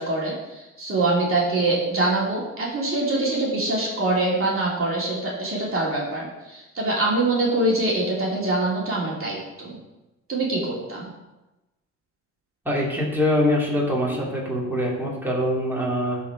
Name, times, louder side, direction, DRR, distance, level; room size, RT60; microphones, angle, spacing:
voice 1, 0.0-9.8 10.3-11.1, right 2 dB, 45° right, -4 dB, 2.7 m, -24 dB
voice 2, 12.6-16.2, left 1 dB, 5° right, -5 dB, 3.0 m, -23 dB
12.5 x 4.4 x 4.7 m, 1.0 s
cardioid pair, 90°, 30 cm